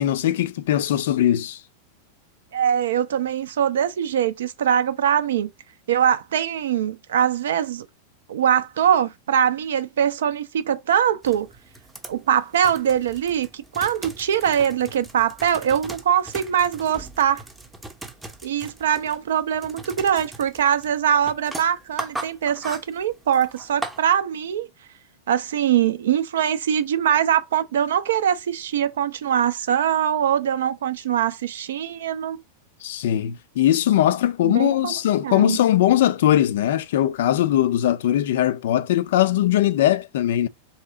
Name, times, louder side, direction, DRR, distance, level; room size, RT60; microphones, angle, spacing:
voice 1, 0.0-1.6 32.8-40.5, left 12 dB, 55° left, 0.3 m, -20 dB
voice 2, 2.5-5.5 5.9-7.9 8.3-11.5 12.1-17.4 18.4-24.7 25.3-32.4 34.4-35.0 35.2-35.6, right 9 dB, 60° right, 0.4 m, -22 dB
sound 1, 11.2-24.0, right 2 dB, 10° right, 0.6 m, -39 dB
3.3 x 2.8 x 3.6 m
figure-of-eight pair, 90°, 0 cm